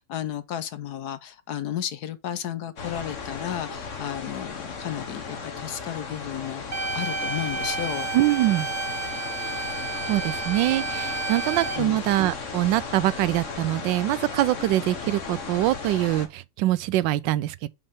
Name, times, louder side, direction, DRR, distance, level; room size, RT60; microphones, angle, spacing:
voice 1, 0.0-6.6 6.9-8.1 11.8-12.0, left 10 dB, 65° left, 1.1 m, -33 dB
sound 1, 2.8-16.3, left 5 dB, 45° left, 1.4 m, -36 dB
sound 2, 6.7-11.8, right 3 dB, 45° right, 0.6 m, -31 dB
voice 2, 8.1-8.7 10.1-17.7, right 15 dB, 75° right, 1.2 m, -24 dB
7.9 x 5.4 x 3.6 m
omnidirectional pair, 2.2 m